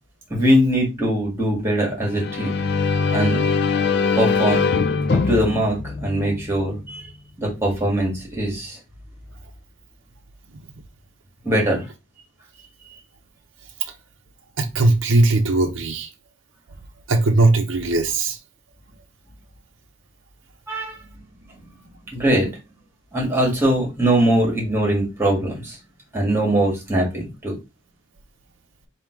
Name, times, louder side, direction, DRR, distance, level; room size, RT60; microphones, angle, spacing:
voice 1, 0.3-2.5 3.1-3.4 4.2-4.7 5.1-7.1 7.4-8.8 11.4-11.9 12.8-13.0 20.7-21.1 21.5-22.5 23.1-25.8 26.1-27.5, right 1 dB, 10° right, 1.8 m, -22 dB
sound 1, 2.0-6.8, left 5 dB, 55° left, 0.5 m, -22 dB
voice 2, 14.6-16.1 17.1-18.4, right 2 dB, 65° right, 0.6 m, -18 dB
3.6 x 2.8 x 4.5 m
head